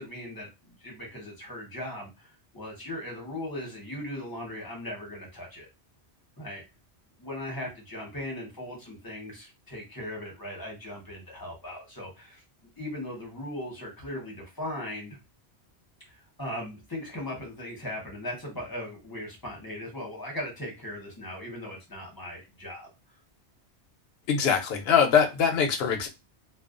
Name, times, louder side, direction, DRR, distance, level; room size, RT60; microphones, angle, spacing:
voice 1, 0.0-5.7 6.4-6.6 7.2-12.4 12.8-15.2 16.1-22.9, left 1 dB, 20° left, -2 dB, 0.8 m, -38 dB
voice 2, 24.3-26.1, left 7 dB, 65° left, 4 dB, 0.8 m, -23 dB
2.4 x 2.3 x 2.3 m, 0.25 s
omnidirectional pair, 1.2 m